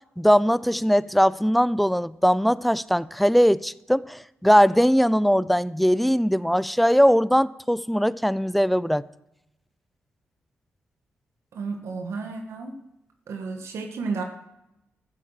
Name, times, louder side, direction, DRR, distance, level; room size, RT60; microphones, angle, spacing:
voice 1, 0.2-9.0, equal, ahead, 0.4 m, -20 dB
voice 2, 11.5-12.7 13.3-14.2, right 4 dB, 80° right, 1.6 m, -32 dB
14.0 x 8.4 x 7.4 m
cardioid pair, 95°, 5 cm